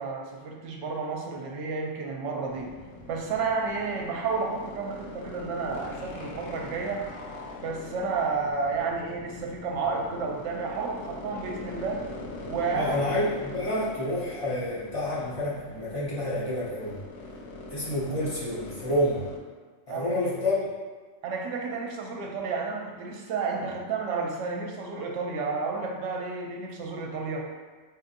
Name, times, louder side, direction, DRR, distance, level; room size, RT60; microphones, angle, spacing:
voice 1, 0.0-2.8 3.1-7.1 7.6-12.0 12.5-13.0 19.9-20.1 21.2-27.5, right 4 dB, 80° right, 1 dB, 0.9 m, -31 dB
sound 1, 2.5-19.4, left 2 dB, 70° left, 0.8 m, -42 dB
voice 2, 12.7-17.0 17.7-19.2 19.9-20.6, left 1 dB, 30° left, -8 dB, 0.8 m, -28 dB
4.2 x 2.6 x 2.5 m, 1.4 s
omnidirectional pair, 1.2 m